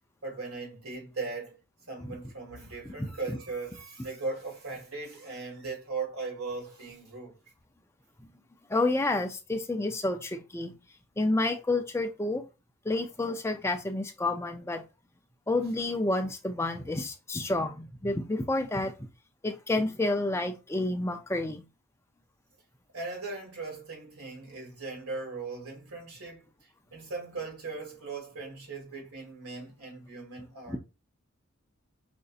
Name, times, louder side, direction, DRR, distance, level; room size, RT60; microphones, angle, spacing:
voice 1, 0.2-1.6 1.9-7.3 22.9-26.4 26.9-30.8, right 3 dB, 85° right, 1.8 m, -38 dB
voice 2, 8.7-10.8 11.2-12.5 12.8-14.8 15.5-18.9 19.4-21.6 30.7-30.8, left 2 dB, 10° left, 0.4 m, -29 dB
5.1 x 2.6 x 2.4 m
head